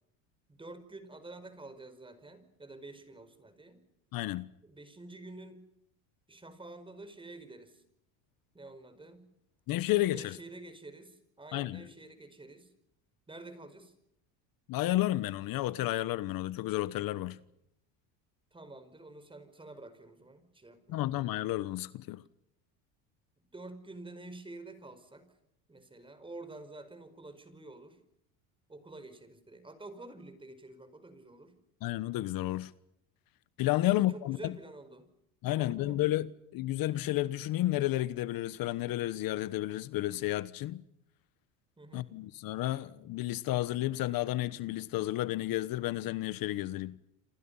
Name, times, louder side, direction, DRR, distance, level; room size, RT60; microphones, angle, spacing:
voice 1, 0.5-3.8 4.6-5.7 6.3-7.8 8.5-9.3 10.1-12.7 13.3-13.9 18.5-21.1 23.5-25.3 25.7-28.0 28.7-31.6 33.8-35.1 35.4-36.0 41.8-42.1, right 2 dB, 10° right, 5.1 m, -49 dB
voice 2, 4.1-4.5 9.7-10.4 11.5-11.8 14.7-17.4 20.9-22.2 31.8-32.7 33.6-34.5 35.4-40.8 41.9-47.0, left 15 dB, 55° left, 1.2 m, -31 dB
28.0 x 28.0 x 5.6 m
supercardioid pair, 115°, 41 cm